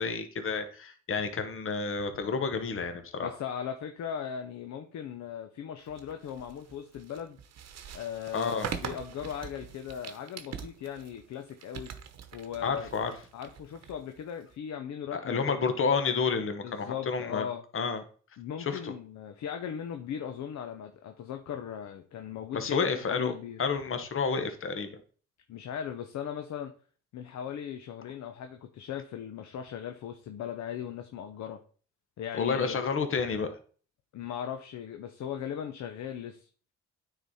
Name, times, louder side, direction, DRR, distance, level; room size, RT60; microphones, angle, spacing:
voice 1, 0.0-3.3 8.3-8.7 12.6-13.2 15.1-17.5 17.7-18.0 18.6-18.9 22.5-23.3 23.6-25.0 32.4-33.6, left 5 dB, 45° left, 8 dB, 1.1 m, -30 dB
voice 2, 3.2-7.4 7.9-8.5 8.8-11.9 12.3-12.9 13.3-15.6 16.6-17.6 18.4-23.6 25.5-26.7 27.1-31.6 32.2-32.8 34.1-36.5, left 8 dB, 65° left, 6 dB, 0.8 m, -38 dB
sound 1, 5.9-14.5, right 7 dB, 60° right, 1.0 m, -43 dB
9.3 x 4.1 x 4.2 m, 0.42 s
cardioid pair, 90°, 30 cm